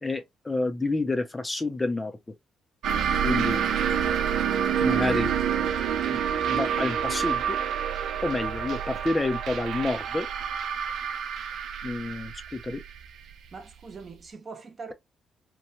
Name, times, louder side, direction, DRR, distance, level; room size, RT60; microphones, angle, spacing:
voice 1, 0.0-2.2 3.2-3.6 4.8-5.3 6.1-6.2 6.5-7.6 8.2-10.3 11.8-12.8, left 2 dB, 20° left, 0.5 m, -29 dB
sound 1, 2.8-14.0, right 8 dB, 75° right, 0.4 m, -28 dB
voice 2, 13.5-14.9, right 4 dB, 40° right, 0.9 m, -42 dB
3.0 x 2.2 x 2.8 m
cardioid pair, 90°, 0 cm